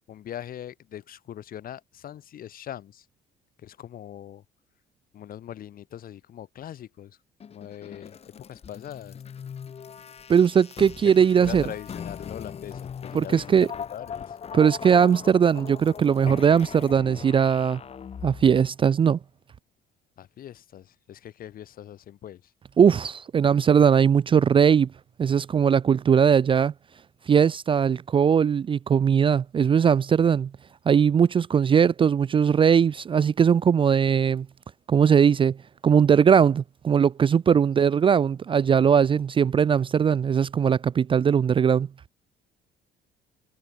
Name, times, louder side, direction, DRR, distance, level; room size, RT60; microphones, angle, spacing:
voice 1, 0.1-3.1 3.6-4.4 5.1-7.2 7.5-9.2 11.2-14.4 20.2-22.5 37.5-37.7, left 11 dB, 60° left, 7.6 m, -41 dB
sound 1, 7.4-18.7, left 7 dB, 35° left, 1.3 m, -40 dB
voice 2, 10.3-11.6 13.1-13.7 14.5-17.8 18.2-19.2 22.8-24.9 25.2-26.7 27.3-30.5 30.9-34.5 34.9-35.6 35.8-41.9, right 7 dB, 30° right, 0.5 m, -20 dB
cardioid pair, 110°, 17 cm